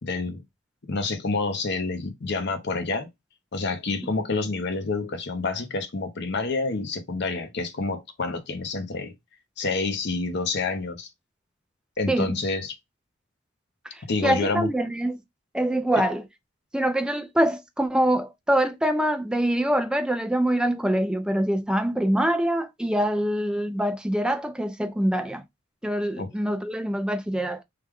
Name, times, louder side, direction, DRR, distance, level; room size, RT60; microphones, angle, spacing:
voice 1, 0.0-0.4 0.9-3.1 3.5-9.1 9.6-11.1 12.0-12.7 14.1-14.7 26.2-26.3, left 3 dB, 50° left, 0.7 m, -28 dB
voice 2, 12.1-12.4 13.9-15.2 15.5-16.2 16.7-25.4 25.8-27.6, right 1 dB, 5° right, 0.4 m, -24 dB
3.2 x 2.2 x 3.5 m
head